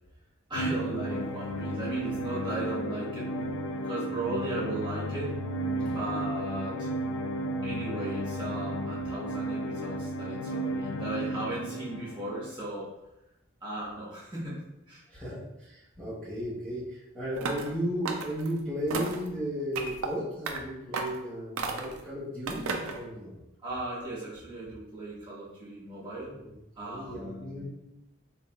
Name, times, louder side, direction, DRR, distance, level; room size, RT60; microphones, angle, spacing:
sound 1, 0.5-12.5, right 1 dB, 75° left, 0.4 m, -33 dB
voice 1, 0.5-3.5 3.8-5.3 5.8-6.9 7.6-12.9 13.6-14.6 14.9-15.0 23.6-26.3 26.7-27.6, right 2 dB, 20° right, -8 dB, 1.3 m, -36 dB
voice 2, 15.1-23.3 26.4-26.5 26.8-27.6, equal, 5° left, -12 dB, 0.8 m, -35 dB
sound 2, 17.4-17.7 18.1-18.5 18.9-19.3 19.7-20.1 20.5-20.6 20.9-21.2 21.6-22.0 22.5-23.0, right 4 dB, 75° right, 0.5 m, -33 dB
4.1 x 3.5 x 2.3 m, 0.91 s
head